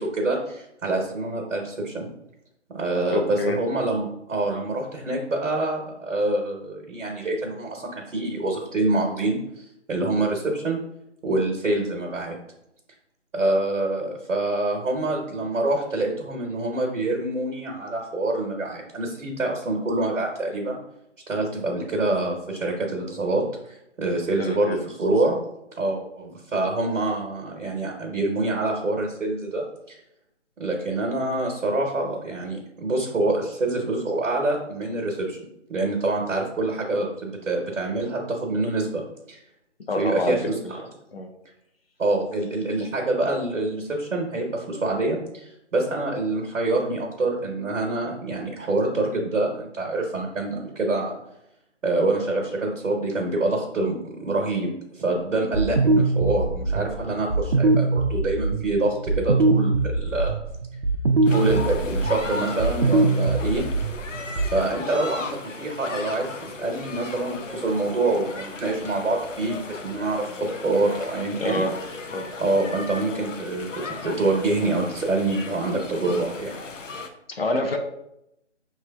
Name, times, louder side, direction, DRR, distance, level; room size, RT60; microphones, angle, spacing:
voice 1, 0.0-2.1 2.7-10.8 11.2-12.3 13.3-20.8 21.3-25.4 25.8-30.0 30.6-35.4 35.7-39.0 39.3-39.4 40.0-40.8 42.0-51.2 51.8-54.7 54.9-60.4 61.3-63.6 64.5-70.2 70.6-71.6 72.4-76.6, right 2 dB, 90° right, -1 dB, 1.1 m, -26 dB
voice 2, 3.1-3.6 24.4-24.8 39.9-40.5 41.1-41.3 71.3-71.7 72.1-72.2 77.3-77.8, left 2 dB, 55° left, 4 dB, 0.7 m, -26 dB
sound 1, 55.5-64.6, right 3 dB, 55° right, 0.5 m, -23 dB
sound 2, 61.2-77.1, left 4 dB, 85° left, 0.7 m, -36 dB
6.0 x 3.2 x 2.3 m, 0.82 s
figure-of-eight pair, 170°, 37 cm